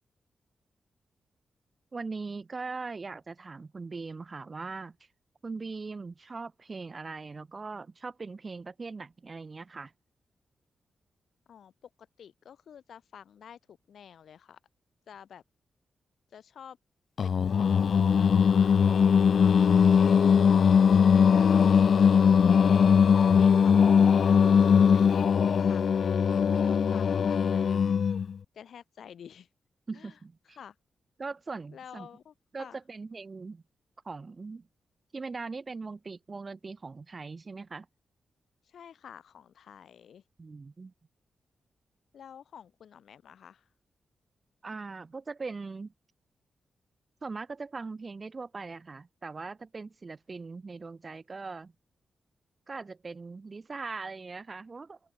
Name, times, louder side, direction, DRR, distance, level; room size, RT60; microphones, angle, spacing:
voice 1, 1.9-4.9 5.4-9.9 29.9-30.6 31.2-32.1 32.5-33.6 34.0-34.7 35.1-37.9 40.4-40.9 44.6-45.9 47.2-51.7 52.7-55.0, right 4 dB, 30° right, 1.6 m, -40 dB
voice 2, 11.5-11.9 12.2-14.6 15.1-15.4 16.3-16.8 17.2-18.8 19.4-20.7 20.9-22.3 23.0-24.4 24.9-28.0 28.5-29.5 29.9-30.2 30.4-30.7 31.7-32.8 38.6-40.2 42.1-43.7, left 8 dB, 75° left, 3.0 m, -50 dB
Singing, 17.2-28.3, left 7 dB, 60° left, 0.5 m, -21 dB
open air
wide cardioid pair, 125°, 0 cm